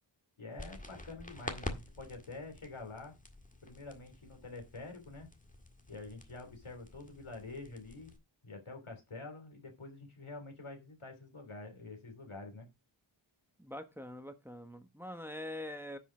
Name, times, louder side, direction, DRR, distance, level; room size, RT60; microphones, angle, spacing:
voice 1, 0.4-3.1 3.6-5.3 5.9-8.1 8.4-12.7, left 3 dB, 90° left, 3.2 m, -47 dB
sound 1, 0.6-8.2, left 1 dB, 15° left, 1.8 m, -48 dB
voice 2, 13.6-16.0, left 1 dB, 5° right, 1.3 m, -44 dB
10.0 x 5.6 x 5.1 m
wide cardioid pair, 60°, 48 cm